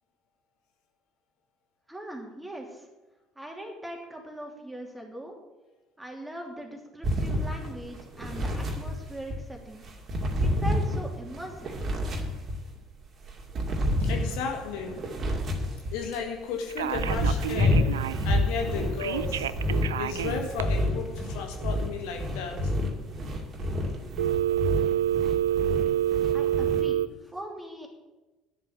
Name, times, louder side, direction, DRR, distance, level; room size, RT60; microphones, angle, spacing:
voice 1, 1.9-2.9 3.3-5.4 6.0-9.8 10.4-11.8 26.3-27.9, right 1 dB, 10° right, 1 dB, 3.1 m, -40 dB
sound 1, 7.0-9.4 9.8-12.8 13.2-16.2 16.7-26.8, left 1 dB, 40° right, 2.4 m, -29 dB
voice 2, 14.1-15.0 15.9-19.5 20.0-22.7, left 6 dB, 65° left, 3 dB, 1.7 m, -34 dB
Telephone, 16.7-18.3 19.0-20.6 24.2-27.1, right 11 dB, 80° right, 0.3 m, -27 dB
10.5 x 7.6 x 7.4 m, 1.1 s
hypercardioid pair, 60°, 0 cm